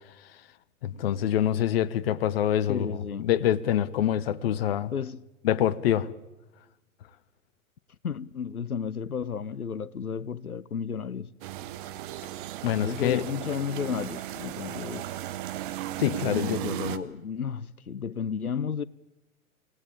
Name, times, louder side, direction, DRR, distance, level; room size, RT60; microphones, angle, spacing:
voice 1, 0.8-4.9 5.4-6.1 12.6-13.2 16.0-16.6, left 11 dB, 45° left, 1.1 m, -25 dB
voice 2, 2.7-3.3 4.9-5.2 8.0-11.3 12.8-15.1 16.3-18.8, left 7 dB, 80° left, 0.8 m, -33 dB
sound 1, 11.4-17.0, right 13 dB, 35° right, 1.3 m, -36 dB
26.0 x 18.0 x 8.6 m
figure-of-eight pair, 105°, 43 cm